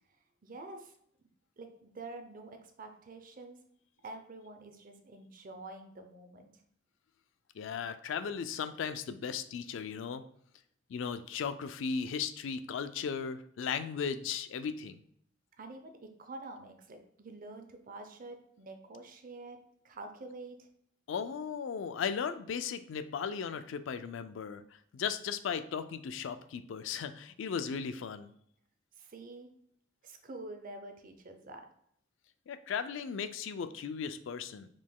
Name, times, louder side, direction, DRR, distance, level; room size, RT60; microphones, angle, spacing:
voice 1, 0.4-0.9 1.6-3.6 4.0-6.5 15.6-19.6 19.8-20.7 29.0-29.5 30.0-31.7, right 2 dB, 45° right, 6 dB, 0.6 m, -47 dB
voice 2, 7.6-10.2 10.9-15.0 21.1-24.6 24.9-28.3 32.5-34.7, left 6 dB, 70° left, 11 dB, 0.3 m, -36 dB
5.0 x 3.7 x 2.2 m, 0.67 s
head